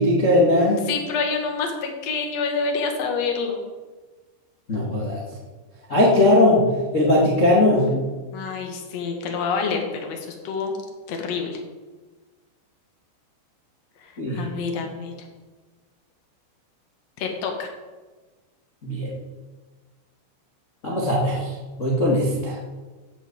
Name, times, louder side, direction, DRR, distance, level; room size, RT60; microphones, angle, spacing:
voice 1, 0.0-0.8 4.7-5.2 5.9-6.7 6.9-8.0 14.2-14.4 18.8-19.1 20.8-21.5 21.8-22.6, left 1 dB, 90° left, -4 dB, 0.6 m, -19 dB
voice 2, 0.9-3.6 8.3-10.7 11.1-11.6 14.0-15.1 17.2-17.7, left 5 dB, 55° left, 3 dB, 1.9 m, -27 dB
13.0 x 6.5 x 7.9 m, 1.3 s
omnidirectional pair, 5.4 m